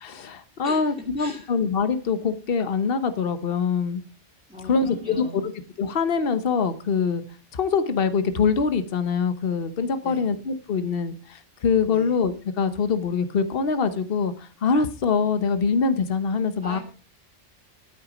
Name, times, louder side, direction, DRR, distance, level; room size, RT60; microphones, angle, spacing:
voice 1, 0.0-4.0 4.7-5.2 5.8-7.2 7.5-16.8, left 5 dB, 55° left, 11 dB, 1.2 m, -24 dB
voice 2, 0.6-1.6 4.5-5.5 10.0-10.3 11.9-12.1 16.6-16.8, left 1 dB, 5° right, -4 dB, 2.8 m, -40 dB
12.0 x 9.5 x 5.1 m, 0.36 s
omnidirectional pair, 1.2 m